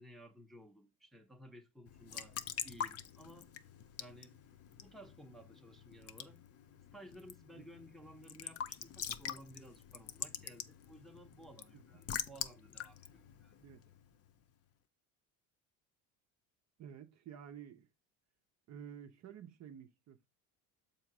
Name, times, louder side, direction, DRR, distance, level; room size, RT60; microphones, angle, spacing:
voice 1, 0.0-2.4 2.6-3.5 4.0-4.4 4.8-6.5 6.9-13.5, equal, ahead, 0.8 m, -56 dB
Raindrop / Drip / Trickle dribble, 1.9-14.3, left 8 dB, 40° left, 0.6 m, -46 dB
voice 2, 16.8-17.9 18.7-20.3, right 8 dB, 45° right, 0.7 m, -51 dB
7.0 x 2.9 x 5.9 m
cardioid pair, 115°, 39 cm